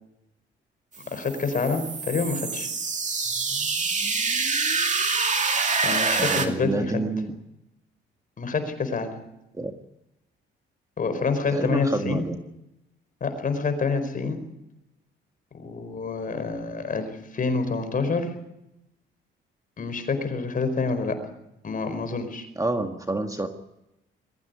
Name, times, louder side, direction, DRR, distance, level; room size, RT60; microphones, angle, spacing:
sound 1, 1.0-6.5, right 4 dB, 35° right, 2.5 m, -26 dB
voice 1, 1.1-2.7 5.8-7.0 8.4-9.1 11.0-12.2 13.2-14.4 15.5-18.3 19.8-21.2 21.6-22.5, left 4 dB, 45° left, 9 dB, 4.7 m, -27 dB
voice 2, 6.2-7.3 9.6-9.7 11.5-12.4 22.6-23.5, right 2 dB, 15° right, 6 dB, 1.8 m, -28 dB
22.0 x 15.0 x 9.6 m, 0.89 s
cardioid pair, 90°, 20 cm